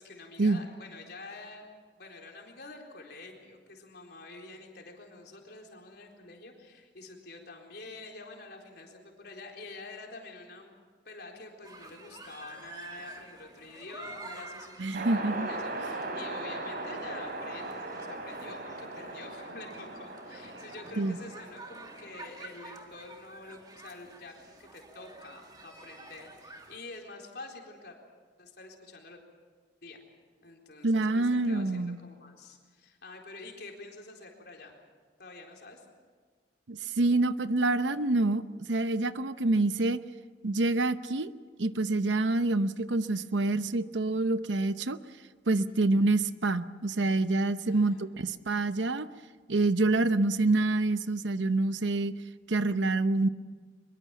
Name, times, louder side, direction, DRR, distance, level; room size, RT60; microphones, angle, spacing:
voice 1, 0.0-1.7 2.0-10.8 11.0-28.0 28.4-29.2 29.8-30.0 30.4-34.8 35.2-35.9 45.8-45.9 47.7-48.2, left 3 dB, 60° left, 1 dB, 4.1 m, -47 dB
sound 1, 11.6-26.8, right 3 dB, 20° right, 2.0 m, -49 dB
voice 2, 14.8-15.5 21.0-21.2 30.8-32.0 36.7-38.4 38.7-40.0 40.4-41.3 41.6-45.0 45.5-49.1 49.5-52.1 52.5-53.3, right 2 dB, 85° right, 12 dB, 0.8 m, -27 dB
sound 2, 14.9-22.3, right 2 dB, 55° right, 3.5 m, -39 dB
23.5 x 22.5 x 7.2 m, 1.5 s
head